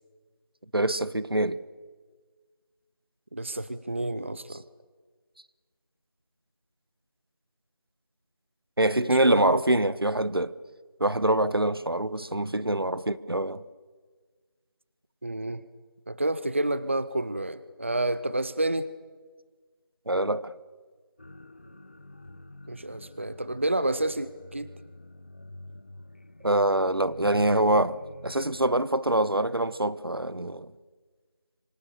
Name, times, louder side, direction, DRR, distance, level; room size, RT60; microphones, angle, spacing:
voice 1, 0.7-1.6 4.5-4.6 8.8-10.5 11.0-13.6 20.1-20.5 26.4-28.0 28.2-30.7, right 1 dB, 80° right, 1.2 m, -25 dB
voice 2, 3.3-4.6 9.1-9.6 15.2-15.6 16.1-18.9 22.7-24.7, right 1 dB, 30° right, 0.7 m, -29 dB
sound 1, 21.2-28.7, left 2 dB, 30° left, 1.0 m, -47 dB
27.0 x 25.0 x 6.8 m
figure-of-eight pair, 170°, 12 cm